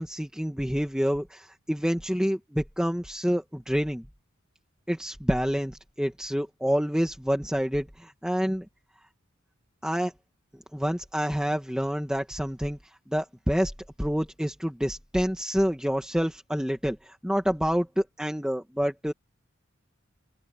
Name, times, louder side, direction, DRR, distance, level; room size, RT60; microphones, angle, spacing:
voice 1, 0.0-4.0 4.9-8.6 9.8-10.1 10.7-12.8 13.1-13.7 14.0-19.1, equal, 5° right, 1.6 m, -28 dB
open air
head